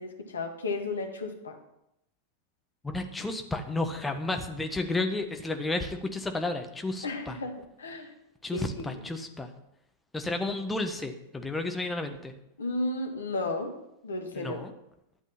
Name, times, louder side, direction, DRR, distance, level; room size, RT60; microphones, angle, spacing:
voice 1, 0.0-1.6 7.0-7.5 7.8-8.1 8.5-8.9 12.6-13.7 14.0-14.6, left 2 dB, 70° left, 4 dB, 1.9 m, -33 dB
voice 2, 2.8-7.4 8.4-9.5 10.1-12.3 14.3-14.7, left 2 dB, 10° left, 5 dB, 1.4 m, -32 dB
12.0 x 8.2 x 5.9 m, 0.83 s
figure-of-eight pair, 90°, 0 cm